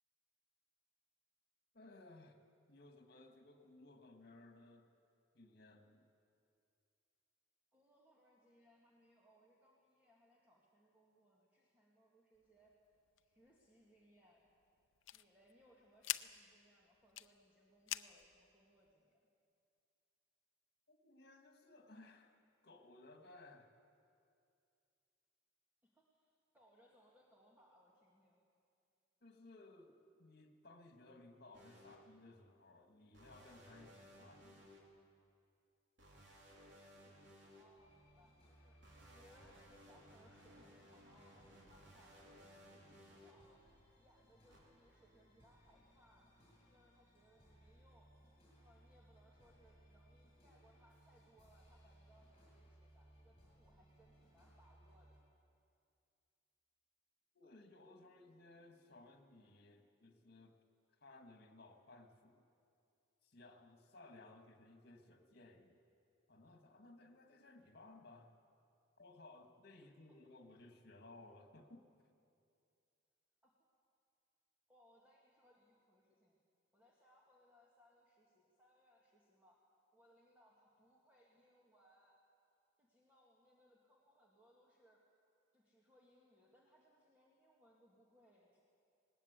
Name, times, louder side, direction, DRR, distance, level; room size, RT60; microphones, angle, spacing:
voice 1, 1.7-2.4 2.7-4.9 5.3-6.1 20.9-23.7 29.2-34.7 57.3-60.6 61.0-62.5 63.2-65.8 66.3-68.3 69.0-71.9, left 2 dB, 55° left, 5 dB, 1.9 m, -60 dB
voice 2, 7.7-12.7 13.2-14.5 15.1-19.2 25.8-28.4 37.5-42.3 42.9-43.7 44.0-48.1 48.6-55.2 69.8-70.2 73.4-73.6 74.7-76.4 76.7-79.6 79.9-82.2 82.8-85.0 85.5-88.6, equal, 10° right, -5 dB, 2.1 m, -70 dB
sound 1, 12.4-18.9, left 14 dB, 85° left, 0.6 m, -48 dB
sound 2, 31.5-32.0 33.1-34.8 36.0-37.6 38.8-43.3 44.5-44.6, equal, 65° right, 3.6 m, -61 dB
sound 3, 37.8-55.2, equal, 25° left, 7.5 m, -67 dB
20.0 x 19.5 x 8.3 m, 2.5 s
head